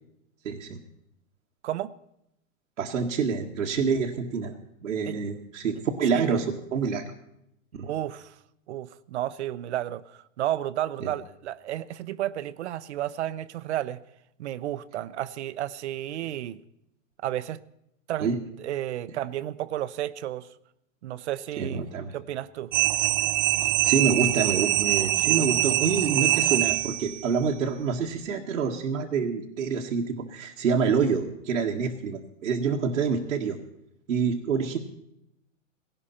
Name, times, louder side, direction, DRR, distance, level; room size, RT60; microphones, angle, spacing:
voice 1, 0.4-0.8 2.8-4.5 4.8-7.0 7.7-7.9 11.0-11.1 18.2-18.4 19.1-19.2 21.6-22.2 23.6-33.6 34.1-34.8, right 5 dB, 90° right, -2 dB, 1.7 m, -27 dB
voice 2, 1.6-1.9 5.1-5.2 5.8-6.4 7.8-8.4 8.7-14.0 14.4-16.6 17.2-17.6 18.1-18.3 18.6-20.5 21.0-21.9 22.1-22.7, right 12 dB, 60° right, 17 dB, 0.8 m, -32 dB
sound 1, 22.7-27.2, right 16 dB, 40° right, 0.5 m, -24 dB
19.0 x 17.5 x 4.3 m, 0.80 s
hypercardioid pair, 140°, 39 cm